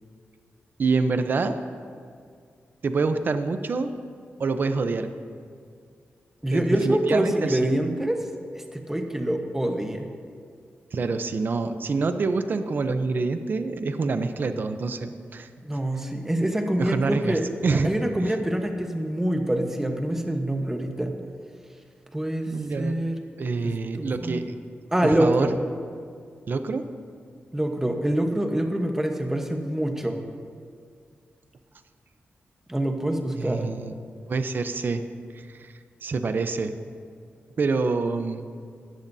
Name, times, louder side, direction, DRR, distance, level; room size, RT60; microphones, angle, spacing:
voice 1, 0.8-1.6 2.8-3.9 4.4-5.1 6.5-7.6 10.9-15.5 16.8-17.9 18.2-18.4 22.5-23.0 23.4-24.5 25.0-25.6 26.5-26.9 33.4-33.9 34.3-35.0 35.3-35.7 36.0-36.7 37.6-38.5, right 4 dB, 50° right, 9 dB, 0.7 m, -26 dB
voice 2, 6.4-8.2 8.5-10.1 15.6-17.4 17.8-21.2 22.1-22.5 22.8-23.2 23.6-24.4 24.9-25.6 27.5-30.2 32.7-33.7, right 1 dB, 10° right, 4 dB, 1.1 m, -25 dB
17.5 x 12.5 x 2.7 m, 2.2 s
wide cardioid pair, 135°, 4 cm